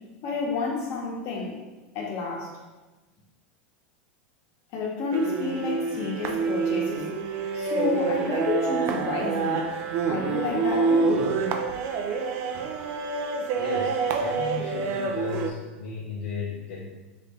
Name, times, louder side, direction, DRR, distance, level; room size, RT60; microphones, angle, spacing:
voice 1, 0.2-1.5 1.9-2.5 4.7-7.1 7.5-9.7 10.1-11.1, left 4 dB, 45° left, -2 dB, 0.9 m, -29 dB
sound 1, 5.1-15.5, right 5 dB, 50° right, 0.4 m, -27 dB
voice 2, 13.6-16.9, left 4 dB, 65° left, -3 dB, 0.5 m, -35 dB
3.6 x 2.1 x 3.4 m, 1.2 s
hypercardioid pair, 110°, 6 cm